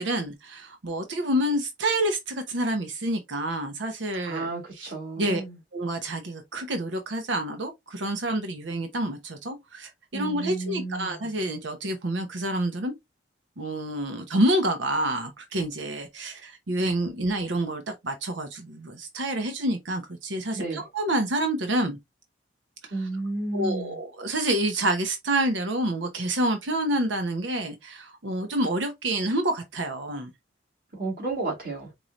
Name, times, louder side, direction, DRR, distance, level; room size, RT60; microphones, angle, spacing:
voice 1, 0.0-4.5 4.8-4.9 5.2-5.4 5.7-12.9 13.6-22.0 23.5-30.3, right 1 dB, 80° right, 0.8 m, -28 dB
voice 2, 4.2-5.6 10.1-11.2 20.5-20.9 22.9-24.0 30.9-31.9, right 2 dB, 50° right, 2.5 m, -32 dB
4.7 x 2.6 x 2.9 m
head